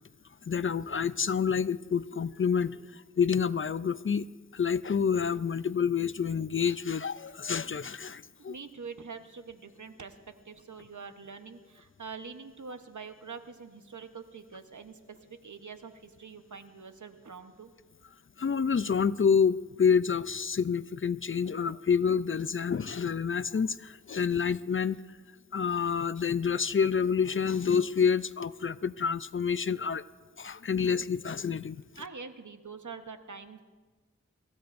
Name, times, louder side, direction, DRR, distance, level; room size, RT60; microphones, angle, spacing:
voice 1, 0.5-4.3 4.5-8.6 18.4-25.0 25.5-30.0 30.4-31.8, left 6 dB, 45° left, 16 dB, 0.4 m, -28 dB
voice 2, 8.4-10.2 10.4-17.7 31.9-33.6, right 5 dB, 70° right, 8 dB, 1.0 m, -45 dB
22.5 x 16.0 x 2.6 m, 1.4 s
wide cardioid pair, 40°, 31 cm